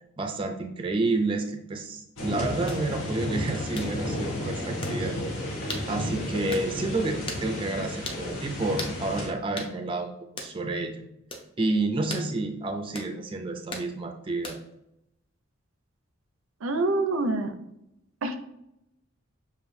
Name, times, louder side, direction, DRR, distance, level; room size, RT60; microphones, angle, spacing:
voice 1, 0.2-5.1 5.9-11.1 11.6-14.6, right 2 dB, 25° right, 4 dB, 0.4 m, -30 dB
sound 1, 2.2-9.3, left 1 dB, 80° left, 1.0 m, -32 dB
sound 2, 2.7-2.8 3.7-3.9 4.8-5.0 5.7-5.9 6.5-6.7 7.3-7.5 8.0-8.2 8.8-9.0 9.6-9.7 10.4-10.5 11.3-11.5 12.1-12.3 12.9-13.1 13.7-13.9 14.4-14.7, left 2 dB, 25° left, 0.5 m, -37 dB
voice 2, 16.6-17.5 18.2-18.4, right 2 dB, 90° right, 7 dB, 0.5 m, -26 dB
6.8 x 2.5 x 2.6 m, 0.81 s
head